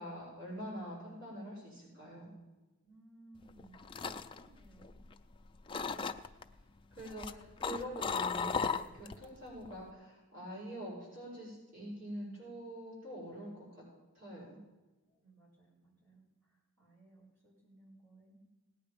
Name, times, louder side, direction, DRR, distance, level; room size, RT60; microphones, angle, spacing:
voice 1, 0.0-2.3 6.9-13.8 14.1-14.6, equal, 60° right, -7 dB, 6.1 m, -45 dB
voice 2, 2.8-3.9 4.3-5.0 15.0-18.4, right 2 dB, 75° right, -6 dB, 5.9 m, -61 dB
sound 1, 3.5-5.3 5.7-6.4 7.0-9.2 9.6-9.9, left 5 dB, 20° left, 0.4 m, -36 dB
18.0 x 9.4 x 5.2 m, 1.1 s
head